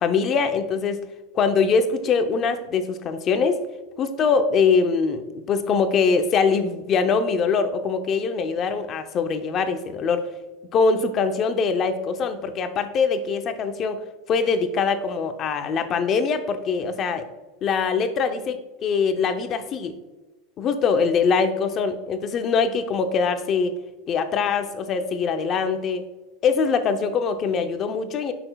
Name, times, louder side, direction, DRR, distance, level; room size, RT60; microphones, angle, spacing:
voice 1, 0.0-1.0 1.3-3.6 4.0-10.3 10.7-14.0 14.3-17.3 17.6-19.9 20.6-23.8 24.1-26.0 26.4-28.3, left 5 dB, 25° left, 8 dB, 0.5 m, -23 dB
11.0 x 5.9 x 2.3 m, 1.1 s
supercardioid pair, 180°, 0 cm